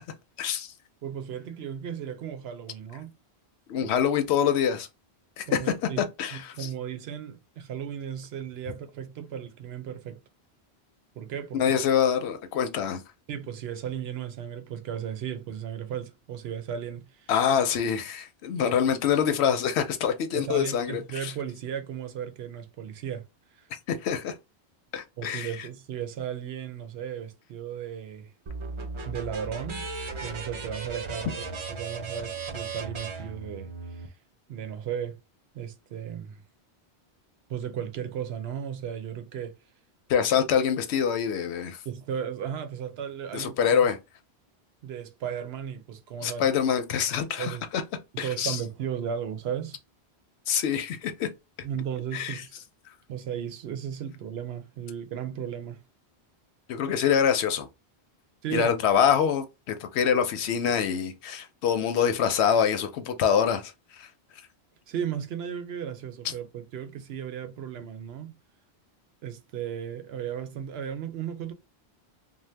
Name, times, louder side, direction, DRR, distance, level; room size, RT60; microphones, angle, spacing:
voice 1, 0.4-0.7 3.7-4.9 5.4-5.7 6.2-6.7 11.5-13.0 17.3-21.3 23.9-24.3 24.9-25.5 40.1-41.8 43.3-44.0 46.2-47.8 48.2-48.6 50.5-51.3 52.1-52.4 56.7-57.7 58.5-64.1, left 8 dB, 80° left, 0.9 m, -25 dB
voice 2, 1.0-3.1 3.8-3.9 5.5-6.0 6.3-10.2 11.2-11.7 13.3-17.3 18.6-18.8 20.3-23.3 23.5-23.7 25.2-28.3 29.1-29.9 30.2-34.1 34.5-35.2 35.5-36.4 37.5-39.6 41.9-43.9 44.8-46.5 47.4-47.7 48.1-49.8 51.6-52.5 53.1-55.8 58.4-58.7 64.9-68.3 69.2-71.5, right 8 dB, 75° right, 0.8 m, -35 dB
sound 1, 28.5-34.1, right 4 dB, 50° right, 0.3 m, -36 dB
2.7 x 2.1 x 3.2 m
omnidirectional pair, 1.1 m